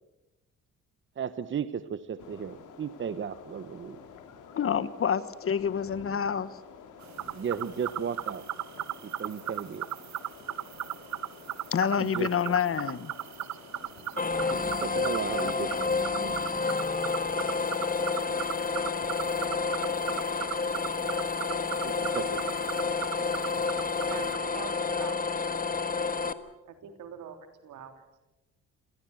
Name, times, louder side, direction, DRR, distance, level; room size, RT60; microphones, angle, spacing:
voice 1, 1.2-4.0 7.3-8.4 9.0-9.9 12.0-12.5 14.5-16.4 16.9-17.0 21.8-22.4 26.0-26.1, right 7 dB, 40° right, 1.0 m, -35 dB
sound 1, 2.2-21.0, left 6 dB, 85° left, 3.3 m, -50 dB
voice 2, 4.6-6.5 11.7-13.1, left 7 dB, 45° left, 1.4 m, -27 dB
sound 2, 7.0-24.4, right 12 dB, 65° right, 1.0 m, -38 dB
sound 3, 14.2-26.3, left 4 dB, 30° left, 1.5 m, -30 dB
voice 3, 24.1-25.3 26.7-27.4 27.6-28.0, right 8 dB, 80° right, 3.5 m, -43 dB
27.0 x 17.5 x 8.0 m
cardioid pair, 90°, 30 cm